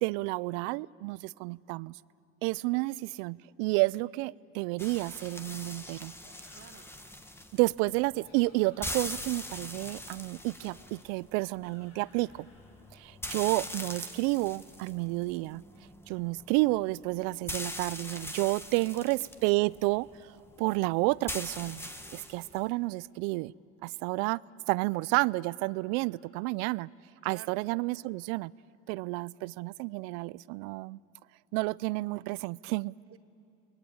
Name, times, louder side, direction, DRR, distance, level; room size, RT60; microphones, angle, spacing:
voice 1, 0.0-2.0 2.4-6.1 7.5-12.5 13.0-15.6 16.1-20.3 20.6-23.5 23.8-24.4 24.7-26.9 27.2-28.5 28.9-31.0 31.5-32.9, right 23 dB, 75° right, 22 dB, 0.5 m, -30 dB
sound 1, 4.8-22.7, left 1 dB, 5° left, 1.4 m, -43 dB
sound 2, 6.2-7.0 8.0-9.2 10.6-12.7, left 3 dB, 80° left, 7.7 m, -61 dB
voice 2, 6.5-6.9 18.6-19.0 27.2-27.6 33.1-33.2, right 9 dB, 40° right, 12 dB, 0.9 m, -51 dB
30.0 x 21.5 x 8.7 m, 2.7 s
supercardioid pair, 105°, 37 cm